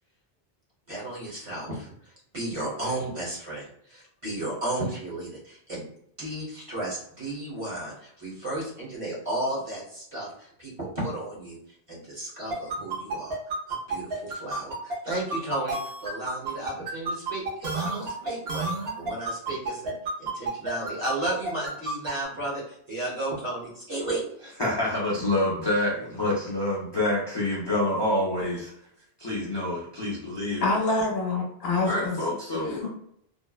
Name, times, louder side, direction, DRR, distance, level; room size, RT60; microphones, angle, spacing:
voice 1, 0.9-5.9 6.2-11.6 11.9-24.2, right 1 dB, 35° right, -5 dB, 0.9 m, -34 dB
sound 1, 12.5-22.1, right 3 dB, 80° right, 0.9 m, -30 dB
voice 2, 24.6-28.7 29.2-30.6 31.8-32.9, left 1 dB, 30° left, -6 dB, 0.5 m, -27 dB
voice 3, 30.6-32.2 32.5-32.9, left 3 dB, 75° left, 1 dB, 0.8 m, -26 dB
2.6 x 2.0 x 2.3 m, 0.71 s
omnidirectional pair, 1.1 m